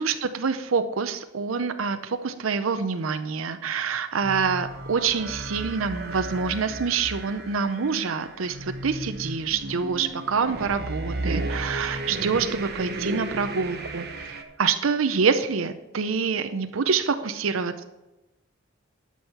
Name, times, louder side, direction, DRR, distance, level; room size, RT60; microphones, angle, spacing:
voice 1, 0.0-14.1 14.6-17.8, right 5 dB, 85° right, 9 dB, 0.6 m, -26 dB
sound 1, 4.2-14.4, right 2 dB, 55° right, 1.0 m, -34 dB
11.5 x 6.3 x 5.5 m, 1.0 s
head